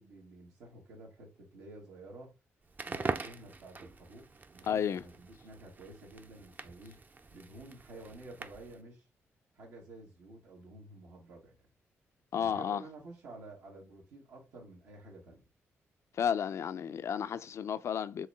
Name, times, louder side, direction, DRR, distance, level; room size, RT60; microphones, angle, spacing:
voice 1, 0.0-2.3 2.8-7.0 7.3-9.0 9.5-11.7 12.4-15.5, right 2 dB, 90° right, 2.1 m, -51 dB
Crackle, 2.7-8.8, right 3 dB, 35° right, 0.5 m, -43 dB
voice 2, 4.6-5.0 12.3-12.8 16.2-18.3, left 8 dB, 65° left, 0.4 m, -32 dB
4.6 x 3.1 x 3.4 m
cardioid pair, 70°, 5 cm